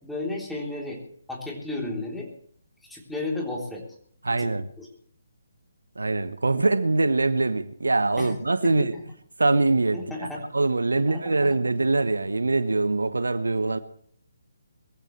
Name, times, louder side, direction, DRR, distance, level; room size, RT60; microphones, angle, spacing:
voice 1, 0.0-1.0 1.3-2.3 2.8-3.8 4.3-4.5 4.8-4.9 8.2-8.4 8.6-9.0 9.9-10.4 10.9-11.6, left 2 dB, 5° left, 3.5 m, -33 dB
voice 2, 4.2-4.7 6.0-8.9 9.4-10.3 10.5-13.8, right 3 dB, 75° right, 1.0 m, -23 dB
22.5 x 15.0 x 3.3 m
figure-of-eight pair, 140°, 0 cm